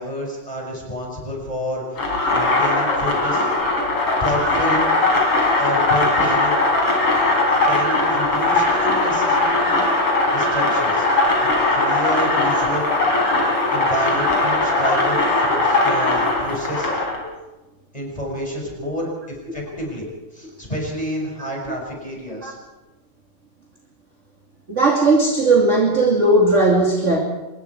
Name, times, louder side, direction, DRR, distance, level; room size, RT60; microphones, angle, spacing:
voice 1, 0.0-3.5 4.2-4.8 5.6-6.6 7.7-9.9 10.3-11.1 11.4-12.9 13.7-16.9 17.9-20.0 20.3-22.5, equal, 10° left, -1 dB, 6.0 m, -29 dB
sound 1, 2.0-17.2, left 2 dB, 45° left, 4.9 m, -19 dB
voice 2, 24.7-27.2, right 2 dB, 25° right, -1 dB, 2.5 m, -17 dB
25.0 x 21.5 x 4.8 m, 1.1 s
omnidirectional pair, 3.6 m